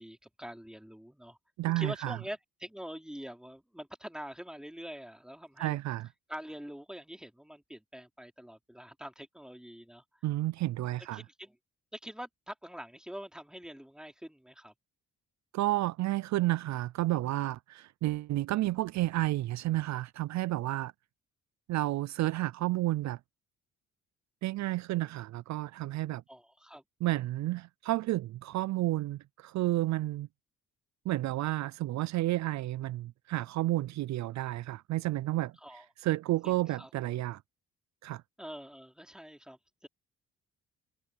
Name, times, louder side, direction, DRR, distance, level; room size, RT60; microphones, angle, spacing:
voice 1, 0.0-1.4 1.6-5.8 6.3-10.0 11.1-11.6 11.9-14.7 26.3-26.8 35.6-35.9 36.4-36.9 38.4-39.9, equal, ahead, 3.8 m, -45 dB
voice 2, 1.6-2.2 5.6-6.1 10.2-11.2 15.5-20.9 21.7-23.2 24.4-26.2 27.0-30.3 31.1-35.5 36.0-37.4 38.0-38.2, right 16 dB, 65° right, 0.5 m, -31 dB
cardioid pair, 90°, 30 cm